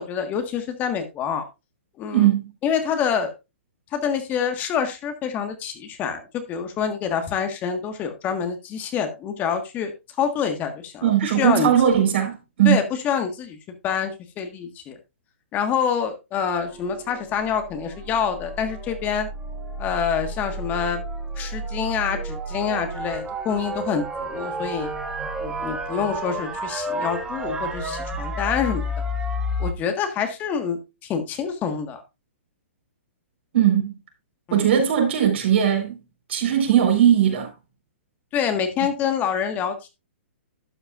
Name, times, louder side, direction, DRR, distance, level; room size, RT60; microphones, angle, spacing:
voice 1, 0.0-1.4 2.0-2.3 2.6-3.3 3.9-9.9 10.2-11.7 12.6-13.6 13.8-15.0 15.5-19.3 19.8-21.0 21.4-24.9 25.4-28.8 29.6-32.0 34.5-34.7 38.3-39.9, left 7 dB, 25° left, 1.5 m, -26 dB
voice 2, 2.1-2.5 11.0-12.8 33.5-33.9 34.5-36.0 36.3-37.5, right 10 dB, 65° right, 4.3 m, -19 dB
sound 1, 16.4-29.7, right 1 dB, 10° right, 1.6 m, -31 dB
12.0 x 8.7 x 2.5 m
hypercardioid pair, 135°, 7 cm